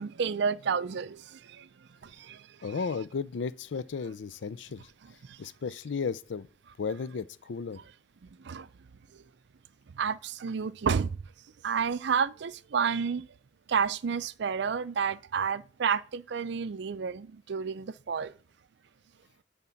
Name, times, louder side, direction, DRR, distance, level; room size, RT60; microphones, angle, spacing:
voice 1, 0.0-1.7 2.0-2.5 5.2-5.4 8.2-8.7 9.9-11.2 11.6-13.3 13.7-18.3, right 6 dB, 65° right, 0.4 m, -30 dB
voice 2, 2.6-4.9 5.4-6.5 6.8-7.8, left 5 dB, 75° left, 0.4 m, -34 dB
10.5 x 3.6 x 5.7 m
head